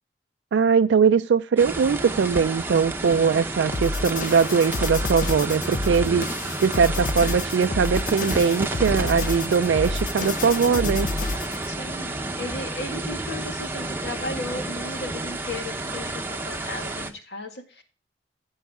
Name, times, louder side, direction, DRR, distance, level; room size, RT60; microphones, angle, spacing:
voice 1, 0.5-6.2 6.6-11.1, right 6 dB, 90° right, 9 dB, 0.4 m, -21 dB
sound 1, 1.6-17.1, right 2 dB, 10° right, 0.9 m, -31 dB
sound 2, 3.7-11.7, left 3 dB, 50° left, 0.6 m, -29 dB
voice 2, 11.7-17.8, left 2 dB, 70° left, 4 dB, 2.0 m, -36 dB
15.5 x 5.6 x 3.7 m, 0.38 s
head